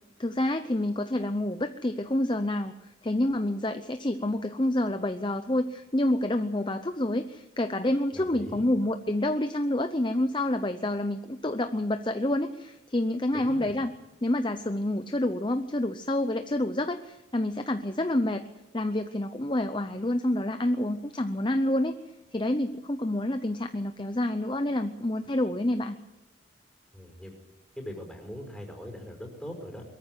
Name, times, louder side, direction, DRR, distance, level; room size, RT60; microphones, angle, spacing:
voice 1, 0.2-2.7 3.0-13.9 14.2-18.4 18.7-22.0 22.3-26.0, left 1 dB, 25° left, 8 dB, 0.7 m, -28 dB
voice 2, 8.1-8.7 13.3-13.7 26.9-27.3 27.8-29.8, equal, 5° left, 1 dB, 5.2 m, -41 dB
22.0 x 14.5 x 9.4 m, 0.98 s
head